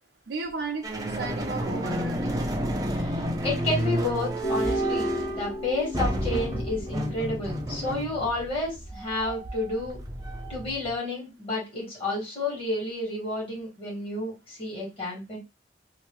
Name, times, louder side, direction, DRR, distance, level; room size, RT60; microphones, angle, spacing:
voice 1, 0.3-2.4, right 3 dB, 75° right, 0.5 m, -34 dB
sound 1, 0.8-10.9, equal, 20° right, 0.6 m, -31 dB
voice 2, 3.0-10.0 10.5-15.4, left 2 dB, 30° left, 2.0 m, -31 dB
sound 2, 4.4-7.7, right 1 dB, 60° left, 1.6 m, -32 dB
3.2 x 2.7 x 3.1 m
head